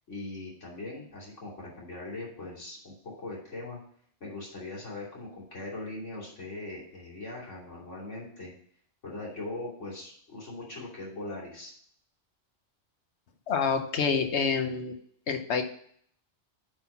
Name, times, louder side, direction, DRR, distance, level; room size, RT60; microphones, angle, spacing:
voice 1, 0.1-3.8 4.2-8.5 9.0-11.7, left 2 dB, 80° left, -5 dB, 3.5 m, -40 dB
voice 2, 13.5-15.0 15.3-15.6, left 5 dB, 65° left, 7 dB, 1.2 m, -27 dB
8.8 x 4.1 x 5.6 m, 0.62 s
omnidirectional pair, 1.2 m